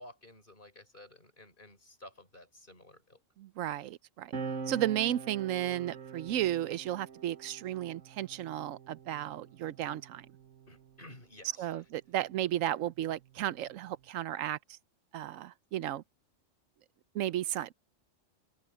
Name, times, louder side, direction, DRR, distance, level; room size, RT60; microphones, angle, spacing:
voice 1, 0.0-3.2 10.7-11.8, left 1 dB, 40° left, 5.4 m, -53 dB
voice 2, 3.4-4.3 4.7-10.3 11.6-14.8 15.1-16.0 17.1-17.7, right 12 dB, 85° right, 1.0 m, -34 dB
sound 1, 4.3-11.2 12.2-14.1, right 4 dB, 70° right, 1.5 m, -45 dB
open air
omnidirectional pair, 1.3 m